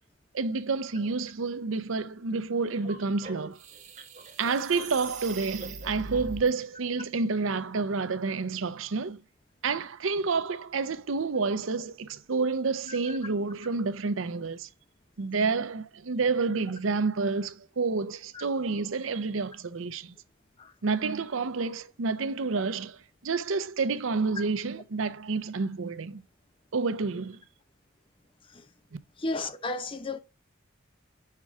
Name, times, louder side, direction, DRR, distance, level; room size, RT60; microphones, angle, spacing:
voice 1, 0.3-3.6 4.4-9.2 9.6-14.7 15.2-20.1 20.8-26.2 26.7-27.4, right 4 dB, 75° right, 0.6 m, -29 dB
sound 1, 2.7-6.5, right 4 dB, 35° right, 1.2 m, -41 dB
voice 2, 29.2-30.2, left 2 dB, 25° left, 0.7 m, -33 dB
5.9 x 4.8 x 4.5 m
head